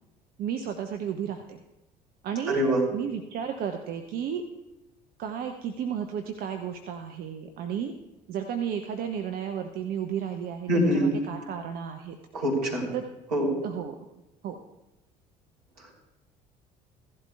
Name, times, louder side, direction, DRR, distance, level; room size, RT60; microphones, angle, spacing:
voice 1, 0.4-1.6 2.2-2.6 2.9-4.4 5.2-7.9 8.3-10.7 10.9-12.2 12.9-13.0 13.6-14.0 14.4-14.6, right 8 dB, 45° right, 5 dB, 0.8 m, -33 dB
voice 2, 2.5-2.8 10.7-11.1 12.3-12.9 13.3-13.6 15.8-15.9, equal, 70° right, -2 dB, 3.3 m, -24 dB
16.0 x 11.5 x 2.3 m, 0.98 s
figure-of-eight pair, 60°, 21 cm